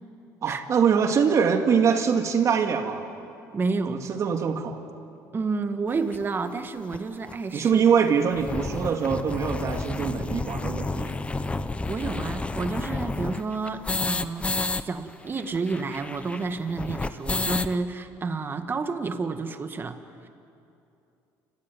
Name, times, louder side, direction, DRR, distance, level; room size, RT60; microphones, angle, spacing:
voice 1, 0.4-3.0 3.9-4.8 7.5-11.2, right 6 dB, 45° right, 5 dB, 2.1 m, -23 dB
voice 2, 3.5-4.0 5.3-7.8 11.9-20.3, right 4 dB, 30° right, 8 dB, 1.7 m, -30 dB
sound 1, 6.1-6.2 6.9-7.0 7.3-7.4 7.7-7.8 8.1-14.8 15.1-15.2 15.4-17.8, left 3 dB, 15° left, 0.8 m, -30 dB
29.5 x 15.5 x 9.3 m, 2.7 s
cardioid pair, 105°, 7 cm